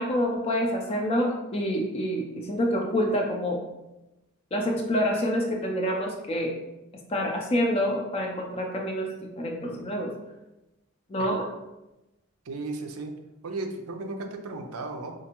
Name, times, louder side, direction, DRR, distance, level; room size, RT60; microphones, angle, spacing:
voice 1, 0.0-3.6 4.5-6.6 7.1-9.1 9.4-10.1 11.1-11.5, equal, 25° left, 1 dB, 0.4 m, -27 dB
voice 2, 12.5-13.2 13.4-15.1, right 2 dB, 80° right, 5 dB, 0.5 m, -35 dB
4.5 x 2.4 x 2.9 m, 1.0 s
head